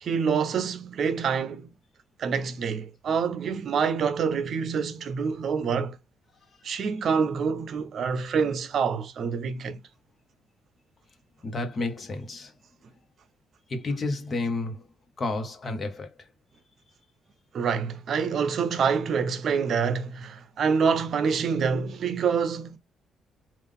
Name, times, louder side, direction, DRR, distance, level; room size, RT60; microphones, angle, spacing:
voice 1, 0.0-1.7 2.2-6.0 6.6-9.8 17.5-22.8, right 6 dB, 60° right, 0.6 m, -26 dB
voice 2, 11.4-12.5 13.7-14.9 15.2-16.3, left 2 dB, 40° left, 1.1 m, -31 dB
3.7 x 2.5 x 3.6 m
cardioid pair, 90°, 0 cm